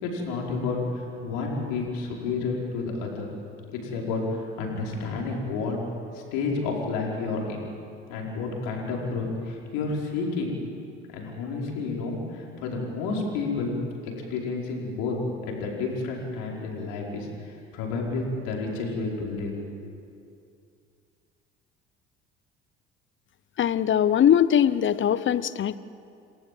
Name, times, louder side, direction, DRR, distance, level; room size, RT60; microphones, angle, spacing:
voice 1, 0.0-3.3 3.7-5.8 6.1-7.7 8.1-10.5 11.1-13.7 14.0-15.2 15.4-19.5 19.8-19.9, left 3 dB, 65° left, -1 dB, 5.2 m, -30 dB
voice 2, 23.6-25.8, left 9 dB, 35° left, 17 dB, 0.9 m, -21 dB
28.5 x 19.0 x 7.7 m, 2.5 s
figure-of-eight pair, 55°, 34 cm